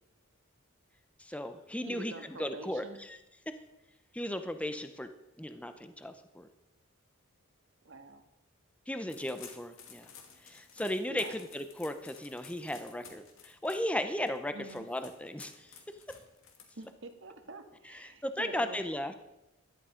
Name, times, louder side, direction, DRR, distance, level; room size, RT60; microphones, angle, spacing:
voice 1, 1.2-2.1 2.4-3.2 4.1-5.1 5.4-6.5 8.9-10.1 10.4-15.7 17.8-19.1, left 1 dB, 5° left, 9 dB, 0.7 m, -36 dB
voice 2, 1.9-3.0 7.8-8.2 11.1-11.3 14.5-14.8 16.8-18.8, right 2 dB, 65° right, 6 dB, 1.7 m, -46 dB
sound 1, 9.1-17.1, left 7 dB, 75° left, 2.4 m, -54 dB
16.5 x 11.5 x 5.1 m, 0.91 s
head